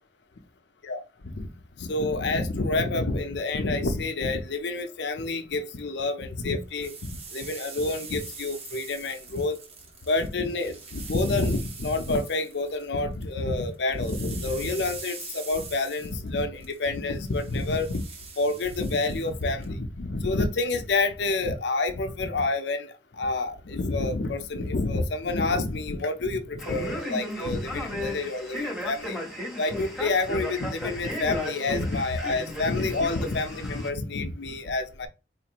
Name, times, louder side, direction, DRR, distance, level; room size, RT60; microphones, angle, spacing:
voice 1, 0.8-1.5 1.8-9.6 10.1-18.0 18.4-29.2 29.6-35.1, left 2 dB, 75° left, 0.6 m, -28 dB
sound 1, 6.5-13.3 13.6-19.7, right 5 dB, 35° right, 0.8 m, -43 dB
Male speech man speaking, 26.6-33.9, left 1 dB, 5° right, 1.3 m, -35 dB
4.2 x 2.5 x 3.0 m
head